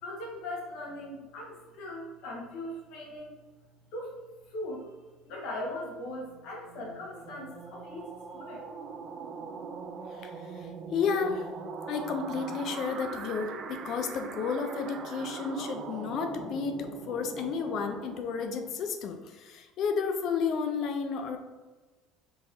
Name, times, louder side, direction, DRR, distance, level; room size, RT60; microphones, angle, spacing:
voice 1, 0.0-3.4 3.9-4.1 4.5-4.9 5.2-8.7, left 1 dB, 70° left, -2 dB, 1.1 m, -39 dB
sound 1, 6.2-18.9, right 5 dB, 45° right, 0.3 m, -41 dB
voice 2, 10.1-11.5 11.9-21.4, left 5 dB, 55° left, 5 dB, 0.4 m, -32 dB
3.8 x 2.8 x 2.6 m, 1.3 s
supercardioid pair, 115°, 0 cm